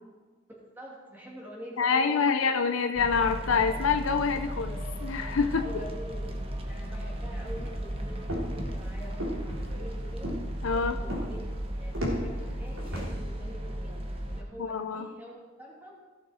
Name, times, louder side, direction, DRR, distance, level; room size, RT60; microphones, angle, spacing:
voice 1, 0.5-2.5 5.5-10.4 11.0-11.4 11.7-15.9, right 1 dB, 10° right, -4 dB, 2.6 m, -45 dB
voice 2, 1.8-5.6 10.6-11.0 14.6-15.1, left 5 dB, 75° left, 7 dB, 0.6 m, -26 dB
sound 1, 2.9-14.4, equal, 25° right, 1.1 m, -35 dB
sound 2, 7.4-13.0, equal, 80° right, 3.2 m, -36 dB
16.5 x 6.9 x 4.3 m, 1.4 s
head